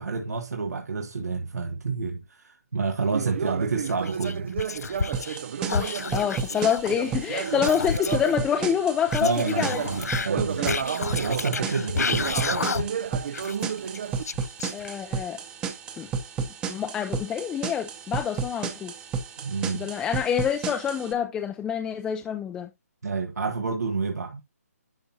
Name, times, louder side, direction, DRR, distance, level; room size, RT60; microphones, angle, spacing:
voice 1, 0.0-5.0 9.2-10.9 11.2-12.7 19.4-19.9 23.0-24.4, right 4 dB, 80° right, 1.4 m, -29 dB
Conversation, 3.1-8.9 9.3-14.2, right 8 dB, 45° right, 0.5 m, -32 dB
Whispering, 3.8-5.4 5.7-8.3 9.1-13.1 13.3-15.1, left 5 dB, 75° left, 0.5 m, -31 dB
sound 1, 5.1-21.1, right 6 dB, 10° right, 0.8 m, -33 dB
voice 2, 5.7-9.8 14.7-15.4 16.0-16.1 16.7-18.9 19.7-22.7, left 8 dB, 10° left, 0.4 m, -27 dB
11.0 x 4.4 x 2.8 m
hypercardioid pair, 160°, 9 cm